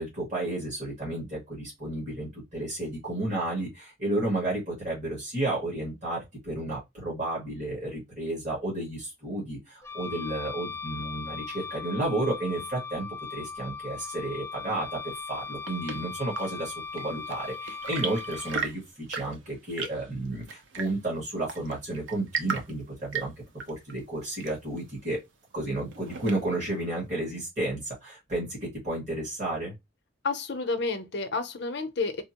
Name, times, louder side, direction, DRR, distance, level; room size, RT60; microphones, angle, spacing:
voice 1, 0.0-23.3 23.7-25.2 25.5-29.7, right 2 dB, 40° right, 1.6 m, -32 dB
Wind instrument woodwind instrument, 9.8-18.6, left 5 dB, 15° left, 0.3 m, -38 dB
Chirp tweet / Engine / Tap, 15.2-26.7, right 5 dB, 85° right, 0.6 m, -39 dB
voice 2, 30.2-32.2, left 3 dB, 60° left, 0.6 m, -30 dB
3.5 x 2.0 x 2.8 m
head